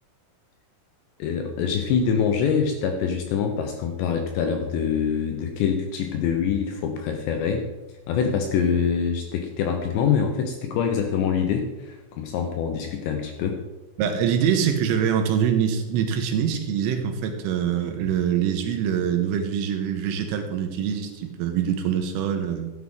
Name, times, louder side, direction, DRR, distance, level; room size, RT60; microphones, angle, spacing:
voice 1, 1.2-7.7 8.1-13.6, left 7 dB, 75° left, 4 dB, 2.7 m, -25 dB
voice 2, 14.0-22.7, right 8 dB, 85° right, 5 dB, 3.7 m, -24 dB
14.5 x 9.8 x 3.8 m, 1.1 s
omnidirectional pair, 5.9 m